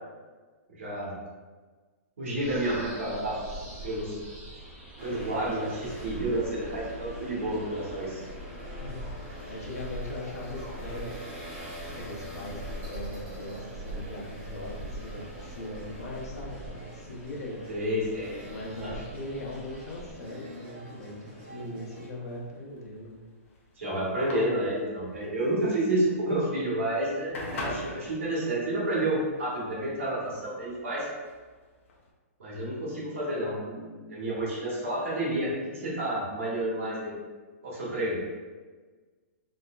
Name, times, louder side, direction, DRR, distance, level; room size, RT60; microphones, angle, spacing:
voice 1, 0.7-1.1 2.2-3.3 3.8-4.2 5.0-8.2 17.7-18.3 18.8-18.9 23.8-31.1 32.4-37.1 37.6-38.2, right 1 dB, 55° right, -6 dB, 1.2 m, -30 dB
sound 1, 2.4-20.1, right 1 dB, 5° right, 0.6 m, -43 dB
sound 2, 5.0-22.1, equal, 25° right, 1.1 m, -44 dB
voice 2, 8.8-11.2 11.9-17.6 18.5-23.3, left 1 dB, 85° left, -3 dB, 0.9 m, -40 dB
sound 3, 22.3-32.1, left 2 dB, 60° left, 0.6 m, -43 dB
4.1 x 2.1 x 2.4 m, 1.4 s
hypercardioid pair, 180°, 8 cm